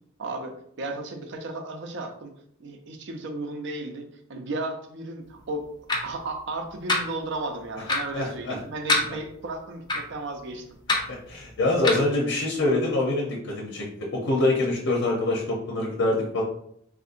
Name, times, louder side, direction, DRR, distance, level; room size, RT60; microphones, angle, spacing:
voice 1, 0.2-2.3 2.6-5.7 6.0-10.6, right 2 dB, 65° right, 4 dB, 0.5 m, -34 dB
sound 1, 5.9-6.0 6.9-7.0 7.9-8.0 8.9-9.1 9.9-10.0 10.9-11.0 11.8-12.0, left 2 dB, 20° left, 0.5 m, -22 dB
voice 2, 8.1-8.6 11.1-16.4, left 2 dB, 75° left, -2 dB, 0.7 m, -25 dB
3.6 x 2.5 x 2.5 m, 0.70 s
head